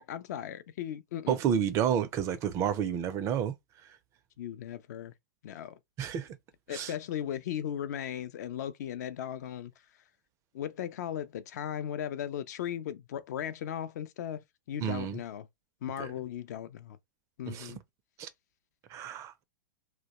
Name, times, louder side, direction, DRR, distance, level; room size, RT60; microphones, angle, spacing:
voice 1, 0.0-1.4 4.4-5.1 5.4-5.8 6.7-9.7 10.5-15.5 15.8-17.0 17.4-17.8, left 10 dB, 60° left, 0.4 m, -37 dB
voice 2, 1.3-3.6 6.0-6.3 6.7-6.9 14.8-15.2 16.0-16.1 17.5-17.7 18.2-18.3 18.9-19.4, right 9 dB, 30° right, 0.3 m, -30 dB
2.2 x 2.0 x 2.8 m
hypercardioid pair, 110°, 10 cm